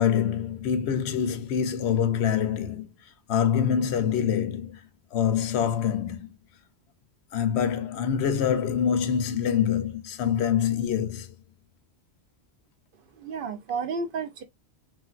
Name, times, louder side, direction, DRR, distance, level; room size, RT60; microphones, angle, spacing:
voice 1, 0.0-2.9 3.3-4.8 5.1-6.3 7.3-11.3, left 8 dB, 90° left, 0.9 m, -25 dB
voice 2, 13.1-14.4, right 5 dB, 65° right, 0.7 m, -32 dB
3.3 x 2.5 x 2.4 m
omnidirectional pair, 1.1 m